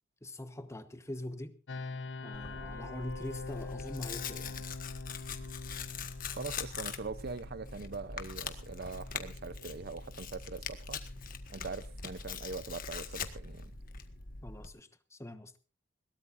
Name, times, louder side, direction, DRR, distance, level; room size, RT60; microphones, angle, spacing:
voice 1, 0.2-1.5 2.2-4.6 14.4-15.5, left 1 dB, 15° left, 1.1 m, -43 dB
sound 1, 1.7-14.5, left 3 dB, 70° left, 1.0 m, -47 dB
Tearing, 2.3-14.7, left 5 dB, 50° left, 1.5 m, -43 dB
voice 2, 6.3-11.0 11.5-13.7, right 4 dB, 55° right, 0.7 m, -42 dB
21.5 x 17.5 x 2.6 m
head